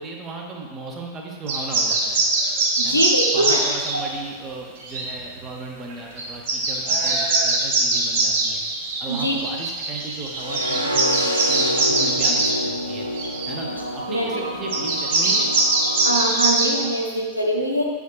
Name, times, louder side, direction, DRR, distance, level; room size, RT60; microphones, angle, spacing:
voice 1, 0.0-2.2 2.8-3.0 3.3-8.6 9.0-13.1 13.5-15.5, right 3 dB, 25° right, 0 dB, 0.7 m, -35 dB
sound 1, 1.5-4.0 4.8-5.0 5.9-6.0 6.2-12.6 13.2-13.5 14.7-16.7, right 3 dB, 50° right, 0.9 m, -22 dB
voice 2, 2.8-3.6 9.1-9.4 14.1-14.3 16.0-17.8, right 1 dB, 90° left, -1 dB, 0.6 m, -23 dB
sound 2, 10.3-16.3, equal, 90° right, 0.3 m, -28 dB
6.2 x 3.5 x 2.3 m, 1.5 s
figure-of-eight pair, 90°, 0 cm